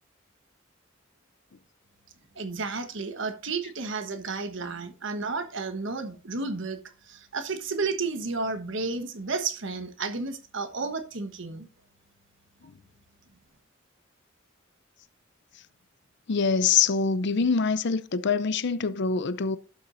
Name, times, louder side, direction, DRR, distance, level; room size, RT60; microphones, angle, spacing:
voice 1, 2.3-6.8 7.1-11.7, right 4 dB, 65° right, 1.2 m, -32 dB
voice 2, 16.3-19.6, left 5 dB, 60° left, 0.6 m, -24 dB
11.5 x 7.1 x 2.6 m
head